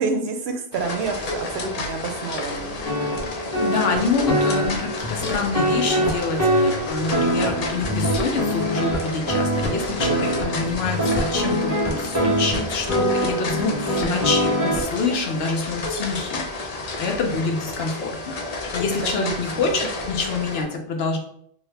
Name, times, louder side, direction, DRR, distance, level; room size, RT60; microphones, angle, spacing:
voice 1, 0.0-2.8 13.5-14.2 19.0-19.7, right 4 dB, 85° right, 5 dB, 0.8 m, -29 dB
sound 1, 0.7-20.6, left 3 dB, 50° left, 0.5 m, -31 dB
sound 2, 2.8-14.8, equal, 15° right, 1.3 m, -24 dB
voice 2, 3.6-16.7 17.0-18.4 18.7-21.2, left 4 dB, 75° left, 3 dB, 0.9 m, -26 dB
2.8 x 2.7 x 3.2 m, 0.67 s
omnidirectional pair, 1.0 m